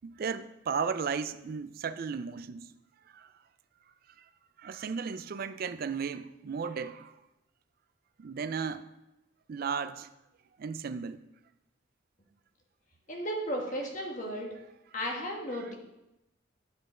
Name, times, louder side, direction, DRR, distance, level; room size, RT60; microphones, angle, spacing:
voice 1, 0.0-2.7 3.1-3.3 4.6-7.1 8.2-8.9 9.5-10.1 10.6-11.2 15.5-15.7, right 6 dB, 45° right, 0.3 m, -35 dB
voice 2, 13.1-14.5 14.9-15.7, equal, 40° left, 1.4 m, -34 dB
9.8 x 5.2 x 4.3 m
head